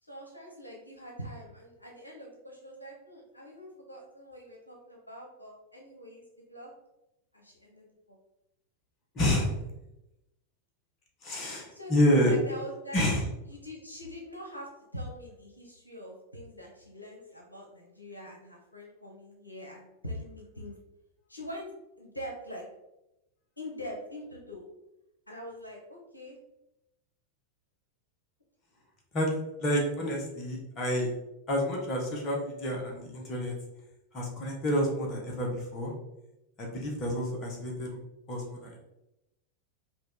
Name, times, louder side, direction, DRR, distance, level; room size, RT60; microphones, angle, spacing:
voice 1, 0.0-6.7 7.3-8.2 11.7-13.0 13.5-20.8 21.3-21.7 22.0-22.6 23.6-24.6 25.3-26.4, left 1 dB, 85° left, -1 dB, 0.9 m, -43 dB
voice 2, 9.1-9.5 11.2-12.4 12.9-13.2 29.1-29.3 29.6-31.1 31.5-33.5 34.1-35.9 36.6-38.0 38.3-38.8, equal, 30° left, -1 dB, 1.3 m, -28 dB
5.2 x 2.6 x 3.7 m, 0.91 s
figure-of-eight pair, 90°, 0 cm